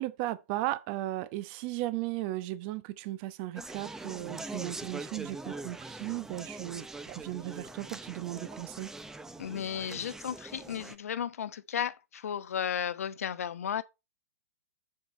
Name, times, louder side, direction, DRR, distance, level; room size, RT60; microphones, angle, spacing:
voice 1, 0.0-8.9, right 16 dB, 40° right, 1.0 m, -36 dB
Conversation, 3.6-11.0, right 2 dB, 5° right, 0.7 m, -43 dB
voice 2, 9.4-13.8, left 8 dB, 70° left, 1.0 m, -34 dB
6.9 x 6.7 x 4.3 m
hypercardioid pair, 130°, 8 cm